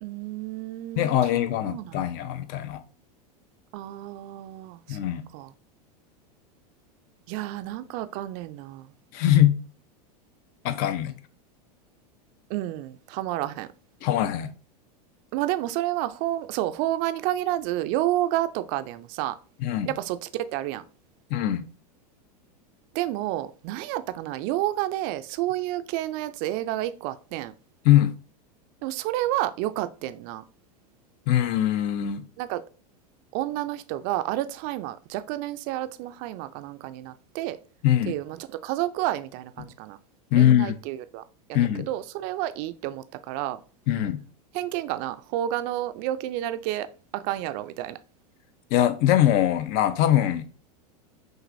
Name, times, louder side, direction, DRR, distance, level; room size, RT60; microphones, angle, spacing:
voice 1, 0.0-2.1 3.7-5.0 5.3-5.5 7.3-8.9 12.5-13.7 15.3-19.3 19.9-20.8 22.9-27.5 28.8-30.4 32.4-32.6 33.3-37.6 38.1-40.0 40.3-41.2 41.5-43.6 44.5-46.9 47.1-48.0, right 14 dB, 50° right, 0.4 m, -30 dB
voice 2, 1.0-2.8 4.9-5.2 9.1-9.6 10.6-11.1 14.0-14.5 19.6-19.9 21.3-21.6 27.8-28.1 31.3-32.2 37.8-38.2 40.3-40.7 41.5-41.9 43.9-44.2 48.7-50.5, left 12 dB, 50° left, 0.6 m, -22 dB
6.2 x 2.5 x 2.6 m
hypercardioid pair, 105°, 20 cm